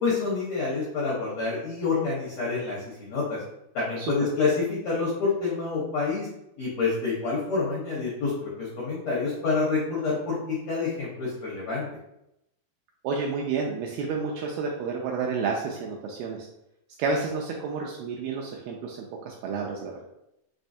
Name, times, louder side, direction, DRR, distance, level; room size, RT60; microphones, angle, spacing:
voice 1, 0.0-3.4 3.7-4.5 4.8-6.3 6.6-11.8, left 4 dB, 80° left, -6 dB, 1.5 m, -27 dB
voice 2, 13.0-16.5 17.0-20.1, right 4 dB, 85° right, 0 dB, 2.2 m, -30 dB
6.0 x 3.2 x 2.7 m, 0.83 s
omnidirectional pair, 4.8 m